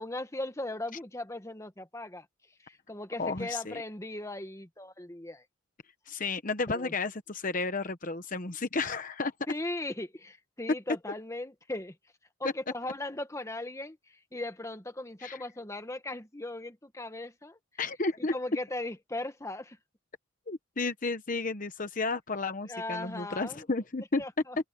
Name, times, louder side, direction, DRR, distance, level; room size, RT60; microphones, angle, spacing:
voice 1, 0.0-2.2 2.6-5.4 6.7-6.9 9.5-11.9 12.4-14.0 14.3-17.6 18.3-19.8 22.6-23.6 24.2-24.6, left 2 dB, 15° left, 1.4 m, -38 dB
voice 2, 3.2-3.8 6.1-9.3 15.2-15.4 17.8-18.3 20.5-24.2, left 3 dB, 40° left, 1.0 m, -32 dB
open air
head